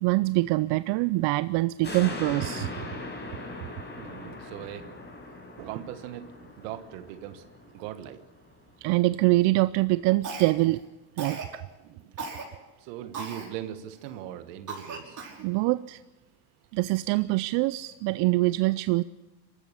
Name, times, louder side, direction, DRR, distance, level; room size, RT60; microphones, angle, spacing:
voice 1, 0.0-2.7 8.8-10.8 11.2-11.6 15.4-16.0 16.7-19.0, right 20 dB, 60° right, 16 dB, 0.6 m, -24 dB
sound 1, 1.8-8.5 8.9-9.0, left 2 dB, 20° left, 5.1 m, -40 dB
voice 2, 3.6-5.0 5.6-7.5 7.7-8.3 11.8-12.2 12.8-15.2, right 12 dB, 75° right, 11 dB, 1.4 m, -40 dB
Cough, 10.2-10.8 11.2-11.5 12.2-12.4 13.1-13.5 14.0-14.1 14.7-15.5, right 4 dB, 40° right, 5.7 m, -37 dB
23.0 x 13.5 x 8.3 m, 1.1 s
hypercardioid pair, 85°, 49 cm